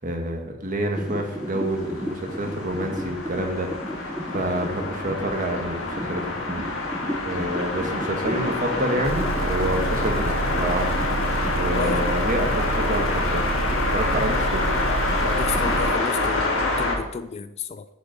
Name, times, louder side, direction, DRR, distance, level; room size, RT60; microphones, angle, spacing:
voice 1, 0.0-11.0 11.5-13.5 13.9-14.7, right 1 dB, 40° right, 3 dB, 1.4 m, -28 dB
sound 1, 0.9-16.0, equal, 5° right, 0.7 m, -35 dB
sound 2, 1.2-17.0, left 2 dB, 70° left, 1.9 m, -27 dB
Engine, 9.0-15.9, right 3 dB, 65° right, 0.6 m, -29 dB
voice 2, 11.8-12.2 15.2-17.9, left 5 dB, 30° left, 12 dB, 0.3 m, -32 dB
10.0 x 5.3 x 5.2 m, 0.90 s
head